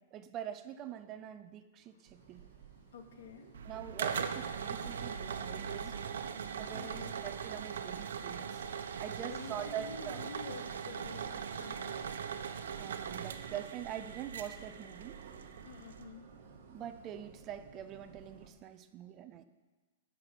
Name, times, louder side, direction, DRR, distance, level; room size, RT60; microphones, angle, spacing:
voice 1, 0.0-2.4 3.6-6.0 6.5-8.6 9.0-10.2 12.8-15.2 16.7-19.4, right 10 dB, 20° right, 11 dB, 0.5 m, -44 dB
voice 2, 2.0-2.6 2.9-3.6 6.5-7.2 8.9-12.1 15.6-16.2, left 5 dB, 75° left, 4 dB, 2.1 m, -50 dB
sound 1, 2.0-18.5, right 5 dB, 50° right, 2.0 m, -57 dB
sound 2, 3.5-16.0, right 7 dB, 75° right, 1.0 m, -40 dB
13.5 x 6.0 x 9.0 m, 1.3 s
hypercardioid pair, 170°, 0 cm